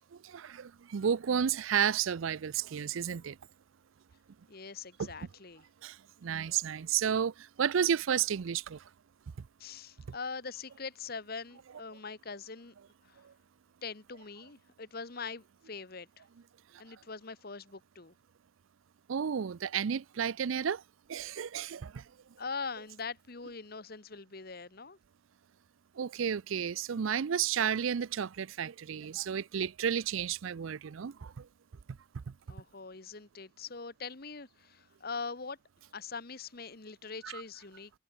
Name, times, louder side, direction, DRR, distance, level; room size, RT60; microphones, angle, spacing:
voice 1, 0.1-3.4 5.0-5.1 5.8-8.9 9.4-9.5 13.2-13.3 19.1-20.8 21.1-22.1 26.0-31.5 32.1-32.3 37.2-37.4, right 8 dB, 80° right, 0.5 m, -32 dB
voice 2, 4.5-5.6 9.6-12.7 13.1-13.2 13.8-16.1 16.8-18.1 22.4-25.0 32.5-35.6 35.9-37.9, left 4 dB, 50° left, 1.4 m, -42 dB
head